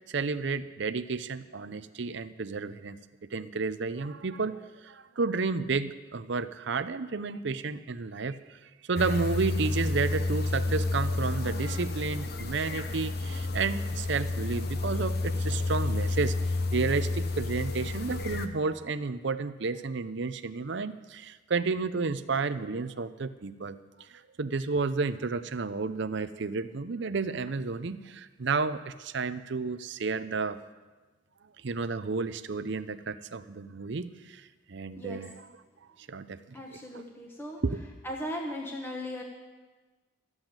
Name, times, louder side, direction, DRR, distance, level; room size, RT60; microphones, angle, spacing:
voice 1, 0.1-3.0 3.3-8.6 8.9-23.8 24.1-30.6 31.6-35.3 36.1-36.4 36.7-37.0 37.6-37.8, right 4 dB, 60° right, 13 dB, 0.6 m, -31 dB
sound 1, 9.0-18.5, left 2 dB, 50° left, 0.8 m, -30 dB
voice 2, 36.5-37.6 38.0-39.2, left 1 dB, 10° left, 0 dB, 1.1 m, -37 dB
13.5 x 8.0 x 8.9 m, 1.3 s
head